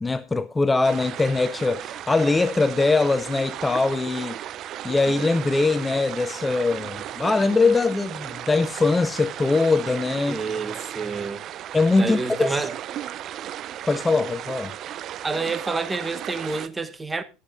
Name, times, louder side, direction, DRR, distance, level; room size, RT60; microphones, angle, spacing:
voice 1, 0.0-4.4 4.8-10.4 11.7-12.7 13.9-14.8, left 3 dB, 15° left, 0.5 m, -22 dB
sound 1, 0.8-16.7, right 11 dB, 45° right, 0.5 m, -35 dB
voice 2, 10.3-11.4 12.0-12.7 15.2-17.2, right 3 dB, 15° right, 1.1 m, -28 dB
21.0 x 8.0 x 2.6 m
hypercardioid pair, 75°, 0 cm